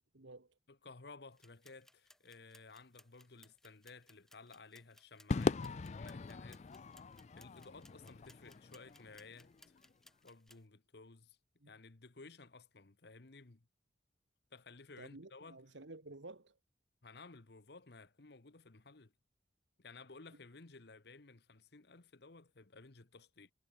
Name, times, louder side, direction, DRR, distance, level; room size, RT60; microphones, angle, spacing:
voice 1, 0.1-0.5 11.6-11.7 15.0-16.6, right 2 dB, 80° right, 1.8 m, -52 dB
voice 2, 0.7-6.7 7.3-9.8 10.2-11.4 11.6-13.7 14.5-15.6 17.0-19.1 19.8-23.5, left 3 dB, 60° left, 1.1 m, -56 dB
sound 1, 1.3-10.6, left 1 dB, 5° left, 5.2 m, -66 dB
Crowd / Fireworks, 5.3-9.8, left 3 dB, 40° left, 0.4 m, -40 dB
head